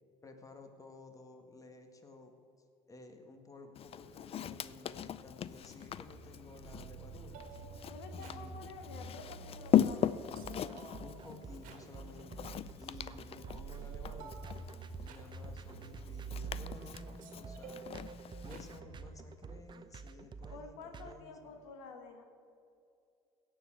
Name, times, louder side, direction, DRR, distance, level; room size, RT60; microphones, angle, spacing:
voice 1, 0.2-2.3 2.9-7.6 8.2-8.6 11.0-14.4 15.0-17.8 18.4-21.6, left 3 dB, 25° left, 5 dB, 1.7 m, -54 dB
Walk footsteps, 3.7-18.8, left 10 dB, 45° left, 0.5 m, -38 dB
sound 1, 5.6-19.3, right 4 dB, 70° right, 1.8 m, -49 dB
voice 2, 7.9-10.2 20.5-22.2, left 4 dB, 85° left, 5 dB, 1.4 m, -49 dB
sound 2, 10.4-21.1, right 5 dB, 35° right, 0.7 m, -49 dB
16.5 x 6.2 x 7.8 m, 2.5 s
supercardioid pair, 80°, 14 cm